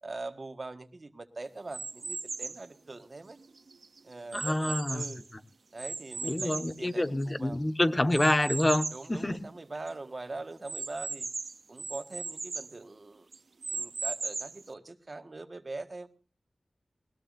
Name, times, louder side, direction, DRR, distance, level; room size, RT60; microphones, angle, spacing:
voice 1, 0.0-3.4 4.0-5.2 5.7-7.6 8.9-11.3 11.7-13.3 13.7-16.1, right 3 dB, 50° right, 8 dB, 1.5 m, -42 dB
sound 1, 1.7-2.7 3.3-5.3 5.8-7.5 8.1-9.1 9.5-9.6 9.9-10.0 10.7-12.7 13.3-14.7, right 4 dB, 75° right, 0.7 m, -37 dB
voice 2, 4.3-5.1 6.2-9.4, left 1 dB, 30° left, 10 dB, 1.4 m, -27 dB
20.5 x 20.0 x 2.6 m, 0.35 s
cardioid pair, 45°, 0 cm